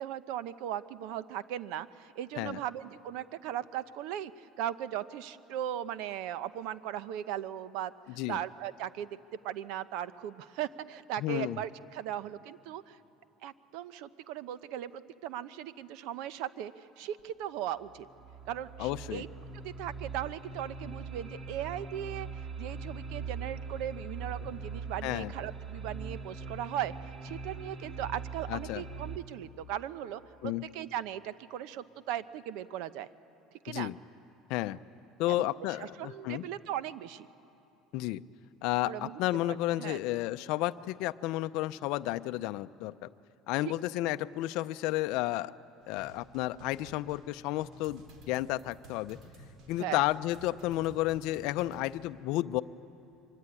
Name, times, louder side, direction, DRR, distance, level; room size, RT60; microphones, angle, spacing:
voice 1, 0.0-7.9 8.3-9.1 9.4-13.0 13.4-18.1 18.5-19.3 19.5-22.3 22.6-26.9 27.2-33.1 33.6-33.9 35.3-35.5 35.8-37.3 38.8-39.2 39.5-40.0 43.6-43.7 49.8-50.0, right 11 dB, 75° right, 14 dB, 0.8 m, -38 dB
voice 2, 11.2-11.6 18.8-19.2 25.0-25.3 28.5-28.8 30.4-30.6 33.7-34.0 34.5-34.8 35.2-36.4 37.9-38.2 38.6-43.1 43.5-45.5 45.9-48.0 48.3-49.2 49.7-52.6, left 16 dB, 70° left, 11 dB, 0.6 m, -32 dB
sound 1, 17.2-17.3 17.8-29.2, right 4 dB, 25° right, 1.9 m, -42 dB
sound 2, 45.8-51.9, right 1 dB, 55° right, 4.4 m, -53 dB
24.5 x 23.5 x 9.8 m, 2.8 s
cardioid pair, 130°, 0 cm